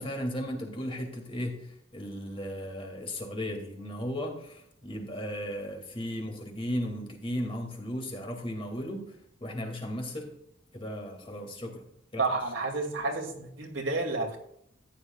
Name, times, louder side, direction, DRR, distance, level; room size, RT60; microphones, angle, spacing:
voice 1, 0.0-9.0 9.4-10.3 10.7-11.8 12.1-12.4, equal, 25° left, 2 dB, 2.2 m, -35 dB
voice 2, 12.2-14.4, right 3 dB, 65° right, 2 dB, 2.4 m, -30 dB
14.5 x 10.0 x 2.4 m, 0.72 s
head